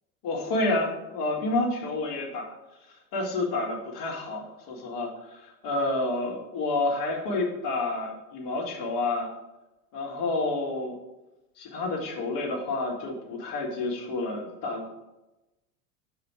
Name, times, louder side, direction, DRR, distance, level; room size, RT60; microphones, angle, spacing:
voice 1, 0.2-2.5 3.1-9.3 9.9-10.9 11.6-14.9, left 2 dB, 45° left, -1 dB, 2.3 m, -29 dB
6.8 x 5.0 x 6.2 m, 0.98 s
figure-of-eight pair, 80°, 45 cm